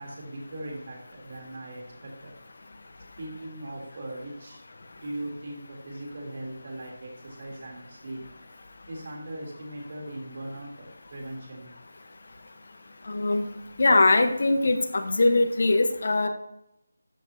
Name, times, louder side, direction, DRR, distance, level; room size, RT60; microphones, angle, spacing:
voice 1, 0.0-2.6 3.2-4.7 4.9-8.2 8.9-11.7 12.5-12.7, right 1 dB, 45° right, 0 dB, 3.3 m, -39 dB
voice 2, 13.1-13.5 13.8-16.3, left 2 dB, 55° left, 7 dB, 1.1 m, -21 dB
13.0 x 7.1 x 2.8 m, 0.83 s
figure-of-eight pair, 170°, 0 cm